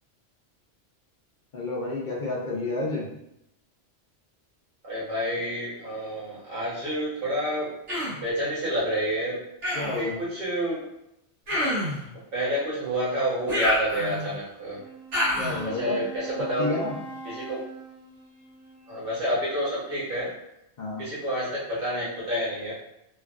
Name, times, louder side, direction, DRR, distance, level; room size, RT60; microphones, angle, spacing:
voice 1, 1.5-3.1 9.7-10.2 15.4-16.0 16.4-16.9 20.8-21.0, left 3 dB, 50° left, -3 dB, 0.7 m, -30 dB
voice 2, 4.8-7.7 8.0-9.4 10.0-10.8 12.3-14.8 15.6-16.7 17.2-17.6 18.9-20.3 21.0-22.7, equal, 55° right, -8 dB, 1.4 m, -29 dB
Human voice, 7.9-8.2 9.6-10.1 11.5-12.0 13.5-14.4 15.1-15.6, equal, 90° right, 1.4 m, -27 dB
Wind instrument woodwind instrument, 14.7-19.6, right 4 dB, 10° right, 0.3 m, -43 dB
3.2 x 2.3 x 2.4 m, 0.81 s
omnidirectional pair, 1.2 m